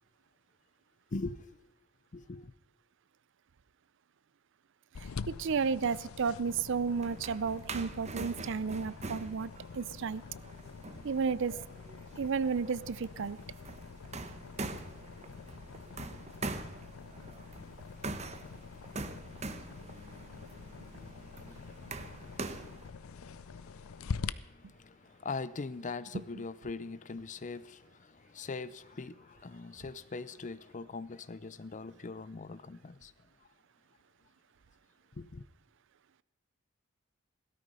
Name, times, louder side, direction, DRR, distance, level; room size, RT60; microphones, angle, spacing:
voice 1, 1.1-1.4 2.1-2.5 17.6-33.1 35.2-35.4, left 3 dB, 35° left, 0.5 m, -43 dB
sound 1, 4.9-24.3, left 5 dB, 85° left, 0.5 m, -46 dB
voice 2, 5.3-10.2 11.0-11.6 12.2-13.4 26.1-26.2, right 5 dB, 60° right, 0.5 m, -32 dB
sound 2, 6.7-22.9, right 3 dB, 35° right, 1.0 m, -44 dB
17.0 x 13.0 x 5.5 m
head